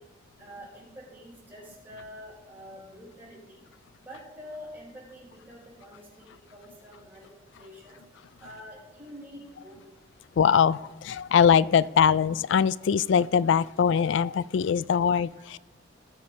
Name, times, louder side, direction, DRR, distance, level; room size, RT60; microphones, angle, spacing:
voice 1, 0.4-3.6 4.0-6.2 6.5-7.3 7.5-8.0 8.4-9.8, equal, 10° right, -5 dB, 5.0 m, -46 dB
voice 2, 10.4-15.6, left 7 dB, 60° left, 20 dB, 0.3 m, -22 dB
18.5 x 6.3 x 5.3 m, 1.1 s
head